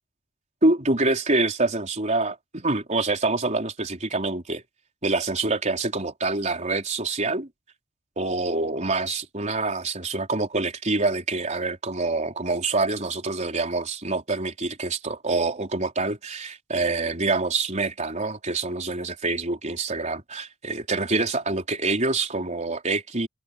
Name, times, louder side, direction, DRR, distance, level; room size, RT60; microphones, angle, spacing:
voice 1, 0.6-4.6 5.0-7.5 8.2-23.3, right 3 dB, 35° right, 4.5 m, -26 dB
head